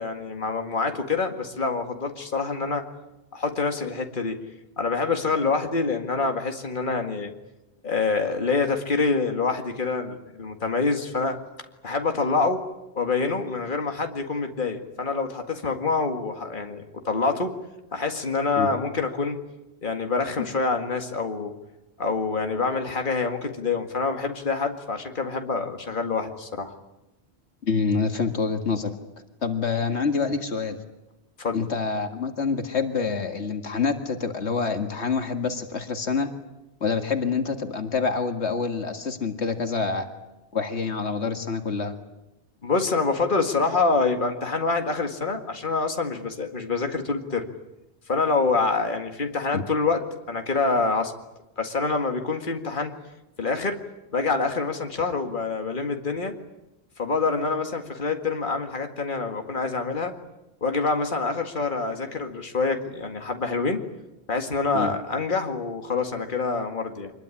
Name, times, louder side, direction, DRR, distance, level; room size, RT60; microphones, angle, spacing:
voice 1, 0.0-2.9 3.3-4.4 4.8-7.3 7.8-12.6 13.0-17.5 17.9-19.4 19.8-21.6 22.0-26.7 31.4-31.6 42.6-47.5 48.1-51.1 51.6-52.9 53.4-53.8 54.1-56.3 57.0-60.1 60.6-63.8 64.3-67.1, left 4 dB, 50° left, 4 dB, 2.2 m, -26 dB
voice 2, 27.6-28.9 29.4-30.8 31.5-36.3 36.8-40.1 40.5-41.9 49.5-49.6 64.7-64.9, left 5 dB, 85° left, 6 dB, 2.2 m, -26 dB
25.5 x 21.0 x 9.9 m, 0.97 s
omnidirectional pair, 1.1 m